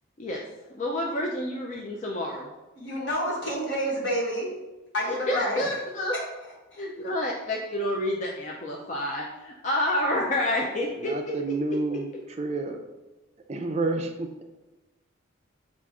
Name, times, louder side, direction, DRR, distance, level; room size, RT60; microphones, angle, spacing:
voice 1, 0.7-2.5 5.3-6.1 6.8-11.6 11.9-12.0, left 1 dB, 35° left, -2 dB, 0.4 m, -29 dB
voice 2, 2.8-4.5 4.9-5.6 6.1-6.2 6.7-6.8, equal, 60° left, -5 dB, 1.5 m, -29 dB
voice 3, 11.0-12.1 12.4-12.8 13.5-14.4, right 3 dB, 30° right, 5 dB, 0.4 m, -29 dB
6.0 x 2.5 x 3.6 m, 1.1 s
head